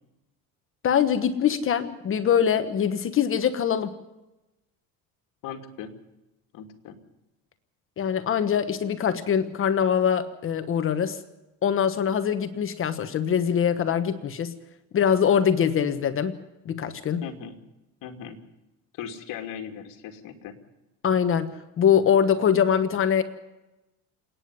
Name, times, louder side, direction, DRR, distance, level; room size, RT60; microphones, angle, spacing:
voice 1, 0.8-3.9 8.0-11.2 11.6-14.6 14.9-16.4 16.6-17.2 21.0-23.2, left 8 dB, 35° left, 10 dB, 1.3 m, -23 dB
voice 2, 5.4-5.9 6.5-7.0 17.2-17.6 18.0-18.4 18.9-20.6, left 8 dB, 65° left, 5 dB, 2.6 m, -38 dB
28.5 x 9.7 x 9.6 m, 0.98 s
cardioid pair, 130°, 35 cm